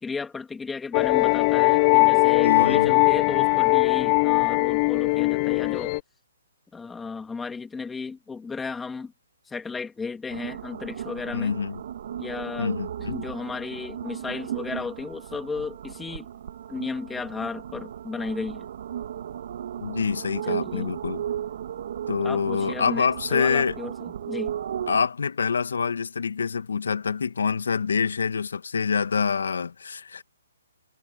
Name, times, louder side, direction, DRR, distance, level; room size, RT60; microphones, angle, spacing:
voice 1, 0.0-5.9 6.7-9.1 9.5-11.5 12.2-12.7 13.0-16.3 16.7-18.7 20.4-20.9 22.2-24.5, left 4 dB, 5° left, 3.0 m, -34 dB
sound 1, 0.9-6.0, left 27 dB, 30° left, 0.7 m, -20 dB
voice 2, 2.4-2.9 11.3-11.8 12.6-13.2 19.8-21.2 22.1-23.8 24.9-30.2, left 6 dB, 75° left, 2.4 m, -26 dB
sound 2, 10.3-25.0, right 9 dB, 55° right, 2.3 m, -35 dB
hypercardioid pair, 150°, 0 cm